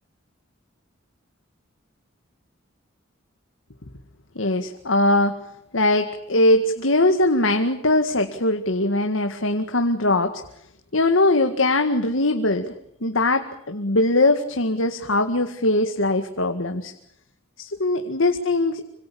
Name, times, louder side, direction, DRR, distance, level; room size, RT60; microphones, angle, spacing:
voice 1, 4.4-5.4 5.7-10.4 10.9-12.7 13.0-16.9 17.6-18.8, left 2 dB, 80° left, 6 dB, 2.0 m, -21 dB
26.0 x 26.0 x 7.1 m, 0.71 s
head